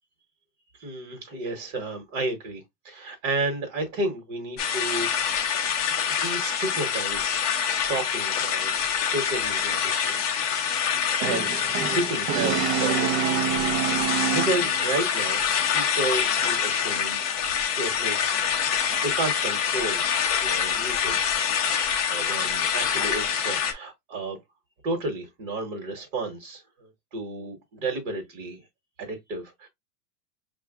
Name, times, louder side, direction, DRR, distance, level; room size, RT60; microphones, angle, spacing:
voice 1, 0.7-5.5 6.1-7.4 7.9-8.7 9.0-10.2 11.1-13.4 13.8-15.4 15.7-17.3 17.7-18.7 19.0-20.0 20.4-21.4 22.0-24.4 24.8-28.7 29.0-29.7, right 2 dB, 55° right, 1.3 m, -32 dB
sound 1, 4.6-23.7, left 7 dB, 30° left, 0.3 m, -26 dB
Brass instrument, 11.2-15.0, right 10 dB, 75° right, 0.8 m, -27 dB
5.5 x 2.5 x 2.3 m
supercardioid pair, 170°, 45 cm